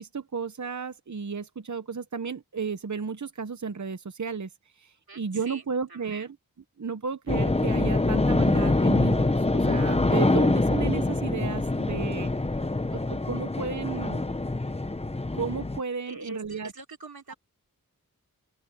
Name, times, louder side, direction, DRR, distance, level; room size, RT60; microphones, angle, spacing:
voice 1, 0.0-6.3 6.8-12.3 12.9-14.3 15.4-16.7 17.3-17.4, right 5 dB, 55° right, 0.9 m, -33 dB
voice 2, 5.1-5.6 5.9-6.3 16.1-17.4, right 3 dB, 85° right, 3.5 m, -43 dB
sound 1, 7.3-15.8, left 2 dB, 15° left, 0.8 m, -25 dB
open air
wide cardioid pair, 65°, 36 cm